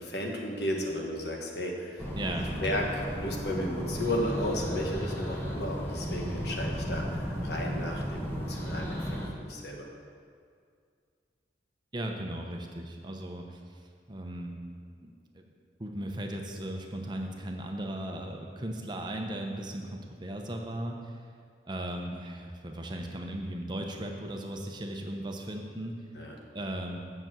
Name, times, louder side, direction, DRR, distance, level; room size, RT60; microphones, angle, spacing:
voice 1, 0.0-2.0 2.6-9.9 26.1-26.3, left 1 dB, 65° left, 0 dB, 1.5 m, -34 dB
sound 1, 2.0-9.3, equal, 15° left, 1.1 m, -34 dB
voice 2, 2.2-2.8 11.9-13.8 14.1-14.6 15.0-15.4 15.8-21.2 21.6-26.0 26.5-27.0, right 1 dB, 25° right, 2 dB, 0.8 m, -37 dB
6.9 x 6.8 x 7.6 m, 2.2 s
head